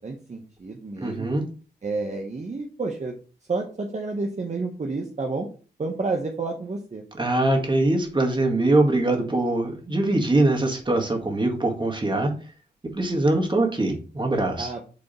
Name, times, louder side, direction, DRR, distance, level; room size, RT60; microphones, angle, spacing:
voice 1, 0.0-1.3 1.8-3.1 3.5-5.5 5.8-7.0 14.6-14.8, right 3 dB, 45° right, 2 dB, 1.1 m, -30 dB
voice 2, 1.0-1.5 7.2-12.3 12.8-14.7, right 2 dB, 25° right, 3 dB, 1.8 m, -22 dB
8.5 x 3.5 x 4.2 m, 0.38 s
cardioid pair, 75°, 17 cm